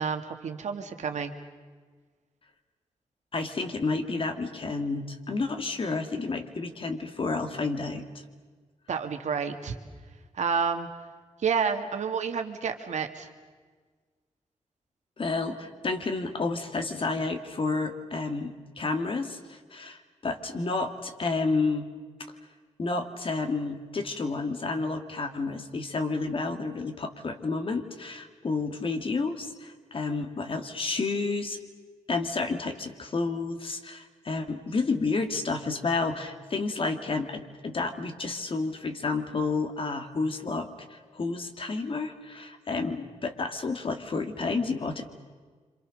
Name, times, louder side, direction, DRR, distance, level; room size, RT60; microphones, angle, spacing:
voice 1, 0.0-1.3 8.9-9.7 10.3-10.9 11.4-13.3, right 6 dB, 75° right, 6 dB, 2.1 m, -29 dB
voice 2, 3.3-8.1 15.2-21.9 22.8-31.6 32.1-45.1, left 3 dB, 45° left, 6 dB, 2.3 m, -30 dB
27.0 x 26.5 x 6.5 m, 1.5 s
cardioid pair, 95°, 12 cm